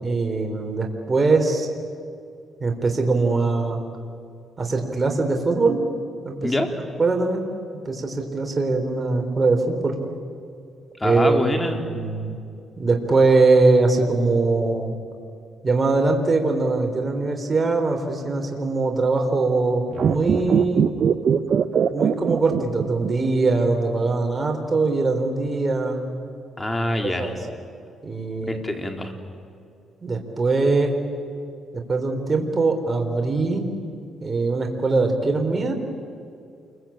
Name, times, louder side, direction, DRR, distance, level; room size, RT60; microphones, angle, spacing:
voice 1, 0.0-1.7 2.6-3.8 4.6-5.8 6.3-6.5 7.0-7.4 7.9-10.0 11.0-12.4 12.8-14.9 15.6-20.9 21.9-26.0 27.2-27.3 28.0-28.6 30.0-31.0 31.9-33.7 34.2-35.7, right 3 dB, 25° right, 3 dB, 4.1 m, -22 dB
voice 2, 11.0-11.8 26.6-27.3 28.5-29.1, left 1 dB, 15° left, 4 dB, 3.5 m, -25 dB
sound 1, 19.9-23.3 23.6-23.7, right 7 dB, 55° right, 1.0 m, -21 dB
29.0 x 22.5 x 8.9 m, 2.4 s
cardioid pair, 90°, 0 cm